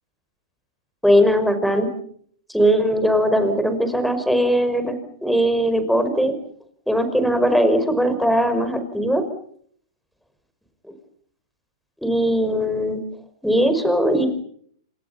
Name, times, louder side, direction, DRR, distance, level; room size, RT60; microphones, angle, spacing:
voice 1, 1.0-1.9 2.5-4.9 5.2-6.3 6.9-9.2 12.0-13.0 13.4-14.3, equal, ahead, 10 dB, 5.3 m, -19 dB
30.0 x 26.5 x 5.8 m, 0.64 s
hypercardioid pair, 120°, 3 cm